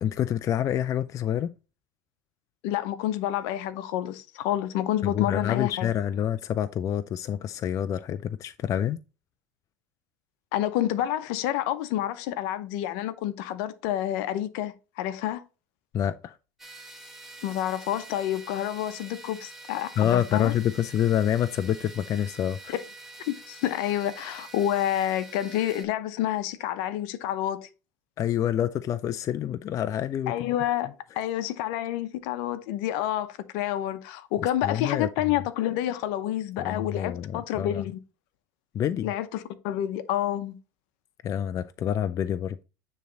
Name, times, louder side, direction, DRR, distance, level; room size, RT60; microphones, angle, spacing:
voice 1, 0.0-1.5 5.0-9.0 15.9-16.4 20.0-22.7 28.2-30.5 34.4-35.1 36.6-37.8 38.7-39.1 41.2-42.6, left 10 dB, 35° left, 0.4 m, -27 dB
voice 2, 2.6-5.9 10.5-15.4 17.4-20.5 22.7-22.8 23.3-27.7 30.3-30.9 31.1-38.0 39.0-40.6, left 12 dB, 70° left, 0.8 m, -29 dB
sound 1, 16.6-25.8, right 2 dB, 5° right, 1.5 m, -46 dB
9.3 x 3.2 x 3.9 m
supercardioid pair, 105°, 9 cm